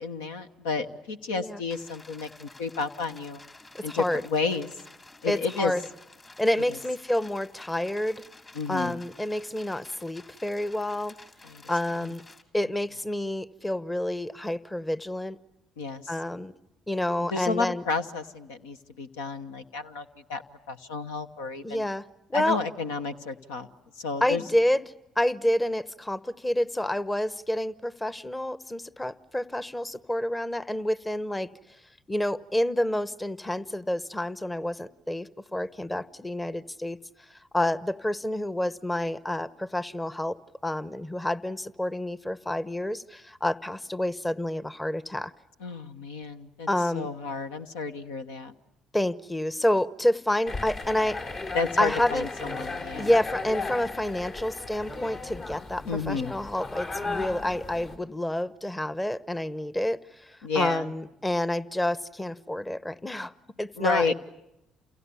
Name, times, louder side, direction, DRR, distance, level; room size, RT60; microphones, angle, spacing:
voice 1, 0.0-3.4 3.8-4.7 5.2-5.7 8.5-9.0 11.4-11.6 15.8-16.0 17.3-20.4 20.7-21.8 22.3-23.7 24.0-24.4 45.6-46.7 46.9-48.5 51.5-53.1 55.9-56.3 60.4-60.9 63.8-64.1, left 4 dB, 80° left, 8 dB, 1.0 m, -31 dB
sound 1, 1.7-12.4, left 2 dB, 35° left, 3.6 m, -51 dB
voice 2, 3.7-4.2 5.3-5.8 6.4-8.2 8.7-11.1 11.7-12.2 12.5-15.4 16.1-16.5 16.9-17.8 21.6-22.0 22.3-22.6 24.2-24.8 25.2-31.5 32.1-37.0 37.3-40.4 40.6-45.3 46.7-47.1 48.9-51.2 51.8-52.3 53.0-63.3 63.6-64.1, left 1 dB, 15° left, 16 dB, 1.0 m, -28 dB
sound 2, 50.5-58.0, left 3 dB, 55° left, 4.5 m, -36 dB
29.0 x 29.0 x 7.1 m, 0.91 s
hypercardioid pair, 55°, 0 cm